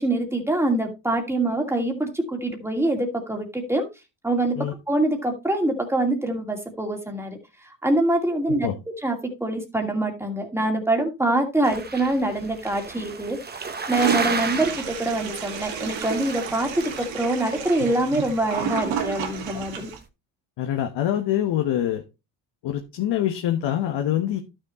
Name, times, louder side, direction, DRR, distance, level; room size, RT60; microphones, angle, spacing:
voice 1, 0.0-3.9 4.2-7.4 7.6-8.7 9.0-19.9, right 1 dB, 5° right, 3 dB, 2.3 m, -25 dB
sound 1, 11.6-20.0, right 4 dB, 20° right, 1.0 m, -34 dB
Toilet flush, 13.9-20.0, right 8 dB, 80° right, 2.1 m, -32 dB
voice 2, 20.6-22.0 22.6-24.4, left 11 dB, 65° left, 4 dB, 1.4 m, -24 dB
12.0 x 6.4 x 3.1 m, 0.25 s
cardioid pair, 125°, 45 cm